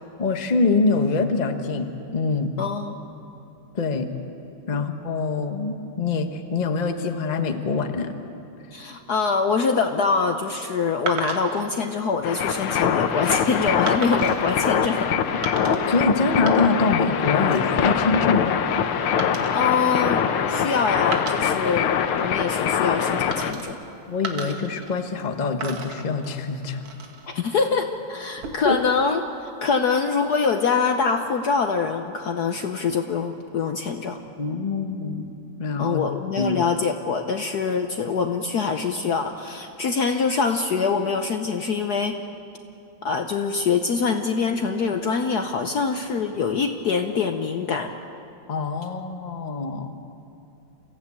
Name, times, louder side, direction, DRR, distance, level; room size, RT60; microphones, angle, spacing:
voice 1, 0.2-2.5 3.7-4.1 4.7-8.1 15.5-18.7 24.1-26.9 28.6-28.8 34.4-35.3 35.6-36.0 36.4-36.6 48.5-49.9, left 3 dB, 25° left, 6 dB, 0.9 m, -24 dB
voice 2, 2.6-3.0 4.7-4.9 8.7-15.1 19.5-21.9 22.2-23.8 27.2-29.2 29.6-34.2 35.8-42.2 43.0-47.9, left 5 dB, 60° left, 6 dB, 1.2 m, -24 dB
sound 1, 11.1-11.7 12.4-12.7 13.9-14.5 15.4-16.0 16.3-17.0 17.3-17.7 19.2-20.6 21.0-22.3 23.3-23.9 24.2-25.3 25.6-27.3 28.2-28.8, right 4 dB, 80° right, 2.5 m, -35 dB
sound 2, 12.2-23.5, left 8 dB, 80° left, 1.8 m, -23 dB
28.0 x 15.5 x 8.5 m, 2.8 s
omnidirectional pair, 2.3 m